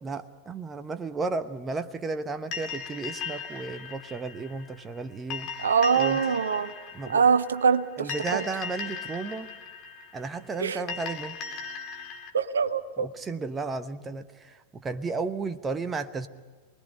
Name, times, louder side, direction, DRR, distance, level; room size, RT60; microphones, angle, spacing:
voice 1, 0.0-5.5 6.0-6.2 6.9-7.2 8.0-9.5 10.1-11.4 13.0-16.3, right 4 dB, 20° right, 11 dB, 1.1 m, -33 dB
sound 1, 2.5-12.3, left 6 dB, 40° left, 2.9 m, -38 dB
voice 2, 5.6-6.7 7.1-8.4 10.6-10.8 12.3-13.1, right 6 dB, 70° right, 12 dB, 0.8 m, -24 dB
28.0 x 20.5 x 5.5 m, 1.5 s
figure-of-eight pair, 90°, 0 cm